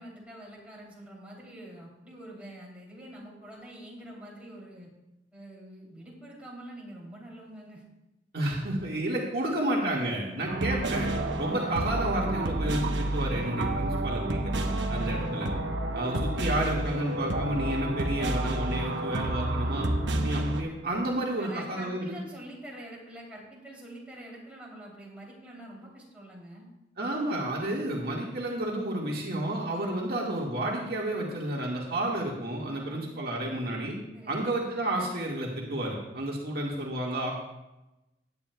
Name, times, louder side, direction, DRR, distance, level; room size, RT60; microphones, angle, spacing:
voice 1, 0.0-4.9 5.3-7.8 10.3-10.6 21.4-26.7 29.7-29.9 32.7-33.1 34.1-34.5, right 1 dB, 5° right, -5 dB, 3.0 m, -46 dB
voice 2, 8.3-11.1 11.4-15.5 15.9-19.9 20.2-22.2 27.0-34.0 34.3-37.3, right 1 dB, 55° right, -3 dB, 1.8 m, -31 dB
sound 1, 10.5-20.6, right 1 dB, 85° right, 0.9 m, -29 dB
17.0 x 9.8 x 2.3 m, 0.95 s
head